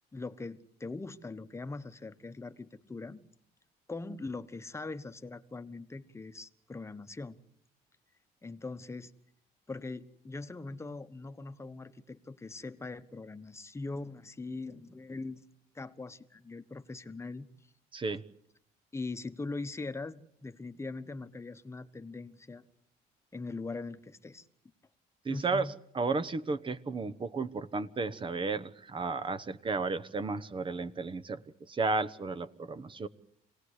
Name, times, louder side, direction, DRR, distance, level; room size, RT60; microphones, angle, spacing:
voice 1, 0.1-3.2 3.9-7.4 8.4-9.1 9.7-15.5 15.7-17.5 18.9-22.6 23.3-24.4 25.3-25.8, left 3 dB, 15° left, 10 dB, 1.2 m, -41 dB
voice 2, 25.2-25.7 25.9-31.4 31.7-33.1, right 3 dB, 30° right, 11 dB, 1.1 m, -33 dB
26.5 x 18.0 x 8.3 m, 0.71 s
cardioid pair, 110°, 17 cm